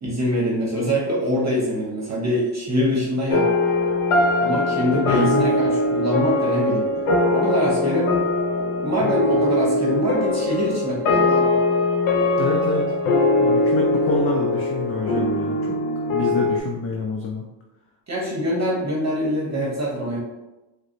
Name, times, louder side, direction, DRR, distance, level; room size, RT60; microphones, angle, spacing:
voice 1, 0.0-3.5 4.4-6.9 7.3-8.2 8.5-11.5 18.1-20.2, equal, 35° right, -3 dB, 0.9 m, -24 dB
sound 1, 3.3-16.6, left 2 dB, 85° left, 0.7 m, -21 dB
voice 2, 4.9-5.5 7.1-7.2 12.4-12.8 13.4-15.8 16.1-17.5 18.5-18.6, left 4 dB, 30° left, 0 dB, 0.4 m, -27 dB
4.7 x 2.1 x 2.6 m, 1.0 s
cardioid pair, 85°, 48 cm